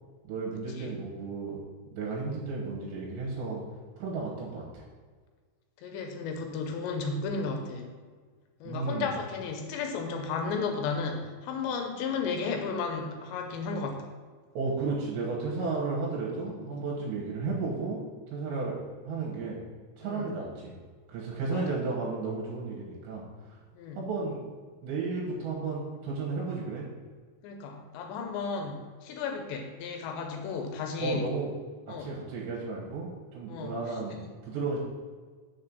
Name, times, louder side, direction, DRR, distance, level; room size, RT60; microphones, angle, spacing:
voice 1, 0.3-1.6 1.9-3.6 4.0-4.9 8.6-9.1 14.5-18.0 18.3-18.8 19.0-19.6 20.0-20.8 21.1-23.6 23.9-24.5 24.8-26.9 31.0-31.5 31.9-34.8, right 4 dB, 75° right, -3 dB, 3.3 m, -33 dB
voice 2, 5.8-7.9 8.6-14.1 20.0-20.3 21.5-21.8 23.7-24.1 27.4-31.3 31.9-32.2 33.5-33.7, left 5 dB, 85° left, 4 dB, 2.9 m, -34 dB
6.7 x 4.3 x 6.6 m, 1.5 s
omnidirectional pair, 5.2 m